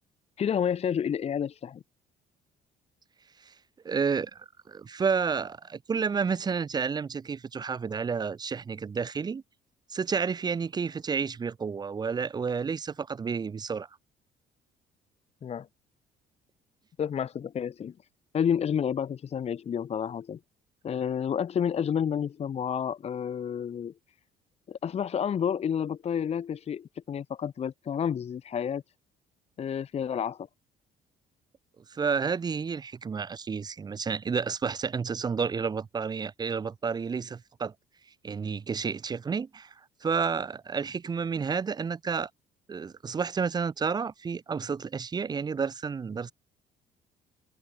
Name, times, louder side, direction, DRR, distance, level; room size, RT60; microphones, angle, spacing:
voice 1, 0.4-1.8 15.4-15.7 17.0-17.9 18.3-20.4 20.8-23.9 24.7-28.8 29.6-30.5, left 8 dB, 40° left, 0.9 m, -30 dB
voice 2, 3.8-9.4 9.9-13.9 31.9-37.7 38.2-39.7 40.0-42.3 42.7-46.3, right 5 dB, 25° right, 0.6 m, -30 dB
cardioid pair, 110°, 17 cm